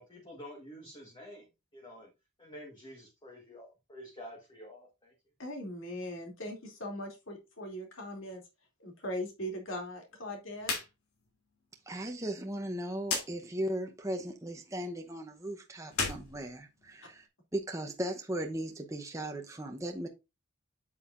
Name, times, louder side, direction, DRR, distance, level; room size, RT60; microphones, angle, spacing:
voice 1, 0.0-1.5 1.7-2.1 2.4-5.1, equal, 20° left, 1.4 m, -49 dB
voice 2, 5.4-8.4 8.8-10.7, left 1 dB, 60° left, 2.6 m, -40 dB
sound 1, 10.6-10.9 11.2-11.3 13.0-13.3 15.8-17.2, left 4 dB, 85° left, 2.8 m, -34 dB
voice 3, 11.9-17.3 17.5-20.1, right 1 dB, 15° right, 0.8 m, -37 dB
8.2 x 7.5 x 2.5 m
head